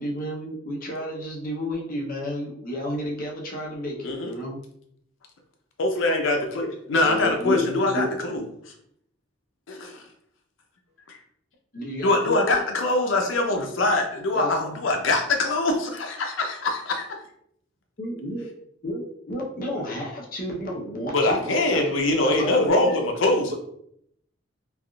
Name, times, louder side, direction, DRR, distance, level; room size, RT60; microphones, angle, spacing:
voice 1, 0.0-4.6 7.2-8.1 11.7-12.6 14.3-14.8 18.0-18.5 18.8-21.4 21.7-21.8 22.2-23.0, equal, 45° left, -1 dB, 0.7 m, -32 dB
voice 2, 5.8-8.5 9.7-10.0 11.1-11.2 12.0-17.1 21.1-23.5, left 2 dB, 80° left, 4 dB, 0.6 m, -23 dB
voice 3, 6.9-7.6 7.9-8.1, left 1 dB, 80° right, -2 dB, 1.0 m, -27 dB
3.4 x 2.4 x 2.3 m, 0.70 s
head